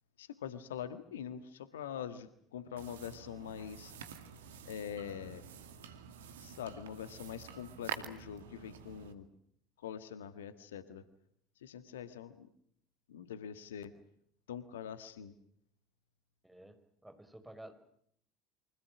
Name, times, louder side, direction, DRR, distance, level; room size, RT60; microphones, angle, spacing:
voice 1, 0.2-3.9 4.7-5.4 6.4-9.3 9.8-11.0 11.6-12.5 13.1-13.9 14.5-15.3, left 9 dB, 70° left, 12 dB, 1.7 m, -44 dB
sound 1, 2.8-9.1, right 7 dB, 70° right, 2.3 m, -48 dB
voice 2, 16.4-17.7, right 1 dB, 5° right, 8 dB, 5.3 m, -52 dB
29.5 x 25.5 x 6.1 m, 0.67 s
figure-of-eight pair, 65°, 0 cm